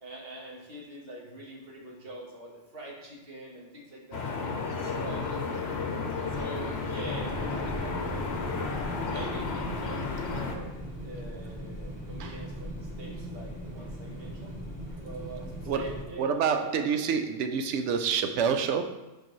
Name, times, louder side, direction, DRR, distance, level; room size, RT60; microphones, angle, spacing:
voice 1, 0.0-4.4 4.8-5.7 6.3-8.6 9.1-10.7 11.0-14.5 15.0-17.0, right 1 dB, 50° right, -3 dB, 1.7 m, -43 dB
sound 1, 4.1-10.6, left 4 dB, 60° left, 1.0 m, -32 dB
sound 2, 7.0-16.0, equal, 15° left, 1.2 m, -40 dB
voice 2, 16.2-19.0, right 6 dB, 75° right, 7 dB, 0.9 m, -27 dB
7.5 x 4.6 x 3.1 m, 1.0 s
omnidirectional pair, 1.2 m